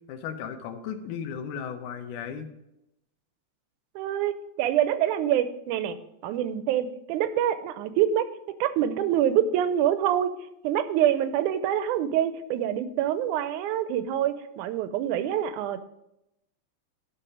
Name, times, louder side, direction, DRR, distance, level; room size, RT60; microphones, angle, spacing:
voice 1, 0.1-2.5, left 7 dB, 80° left, 7 dB, 2.4 m, -35 dB
voice 2, 4.0-6.0 6.2-8.3 8.6-10.3 10.6-15.8, right 10 dB, 85° right, 12 dB, 2.1 m, -25 dB
11.5 x 5.5 x 4.8 m, 0.85 s
omnidirectional pair, 3.5 m